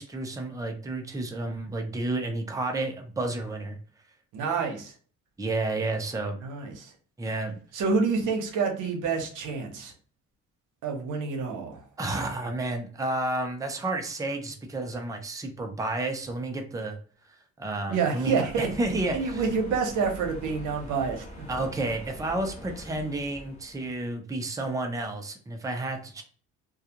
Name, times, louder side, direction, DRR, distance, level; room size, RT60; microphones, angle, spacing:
voice 1, 0.0-3.8 5.4-6.4 7.2-7.6 12.0-17.0 17.6-19.4 21.5-26.2, right 2 dB, 10° right, 4 dB, 0.5 m, -31 dB
voice 2, 4.3-4.9 6.4-6.9 7.7-9.9 10.8-11.8 17.9-18.7 19.1-21.3, right 5 dB, 85° right, 3 dB, 0.8 m, -28 dB
sound 1, 18.4-24.0, equal, 25° left, 1.0 m, -43 dB
2.3 x 2.3 x 2.8 m, 0.42 s
cardioid pair, 90°, 30 cm